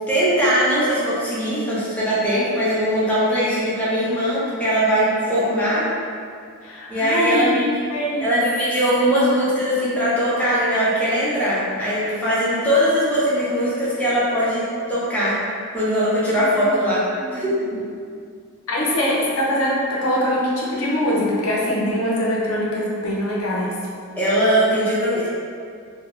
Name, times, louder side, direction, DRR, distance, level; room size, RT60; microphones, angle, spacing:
voice 1, 0.1-5.9 6.9-7.6 8.2-14.6 14.9-15.4 15.7-17.0 17.3-17.5 24.2-25.3, equal, 5° left, -10 dB, 0.6 m, -20 dB
voice 2, 6.6-7.5 7.8-8.4 16.3-16.8 17.2-17.4 17.6-17.8 18.7-23.8, equal, 65° left, -4 dB, 0.6 m, -23 dB
2.6 x 2.2 x 3.1 m, 2.3 s
head